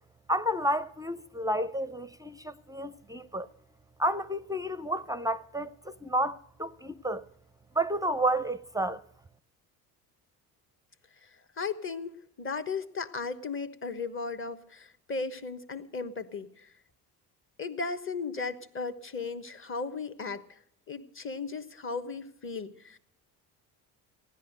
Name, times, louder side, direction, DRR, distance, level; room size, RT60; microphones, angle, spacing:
voice 1, 0.3-3.5 4.0-7.3 7.7-9.0, right 1 dB, 10° right, 0.6 m, -31 dB
voice 2, 11.2-16.7 17.6-20.6 20.9-23.0, left 4 dB, 25° left, 1.3 m, -36 dB
16.0 x 11.0 x 6.6 m
hypercardioid pair, 60°, 47 cm